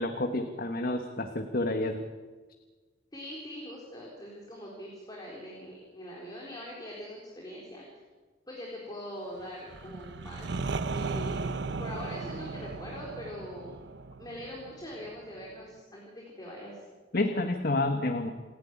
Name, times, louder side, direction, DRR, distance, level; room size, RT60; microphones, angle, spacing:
voice 1, 0.0-2.0 17.1-18.3, left 2 dB, 55° left, 6 dB, 1.3 m, -29 dB
voice 2, 3.1-7.8 8.5-13.8 14.2-16.9, equal, 20° left, -3 dB, 4.2 m, -43 dB
sound 1, 9.7-15.4, right 3 dB, 65° right, 0.8 m, -36 dB
28.5 x 11.0 x 9.7 m, 1.4 s
head